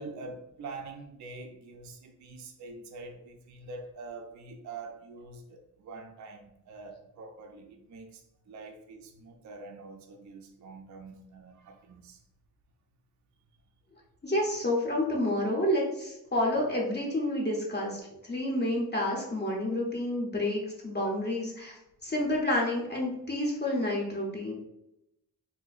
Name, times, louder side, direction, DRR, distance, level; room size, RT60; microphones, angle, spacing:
voice 1, 0.0-12.2 21.0-21.1, right 3 dB, 45° right, 3 dB, 0.4 m, -45 dB
voice 2, 14.2-24.5, left 1 dB, 25° left, -3 dB, 0.5 m, -29 dB
3.8 x 2.5 x 2.3 m, 0.88 s
wide cardioid pair, 165°, 40 cm